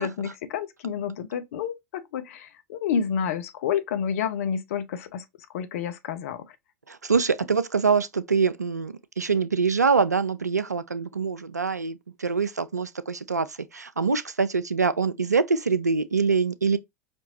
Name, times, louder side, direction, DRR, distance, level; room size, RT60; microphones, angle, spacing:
voice 1, 0.0-5.2 5.5-6.5, left 7 dB, 60° left, 0.5 m, -29 dB
voice 2, 6.9-16.8, right 5 dB, 90° right, 0.4 m, -24 dB
5.2 x 2.8 x 2.7 m
figure-of-eight pair, 80°, 9 cm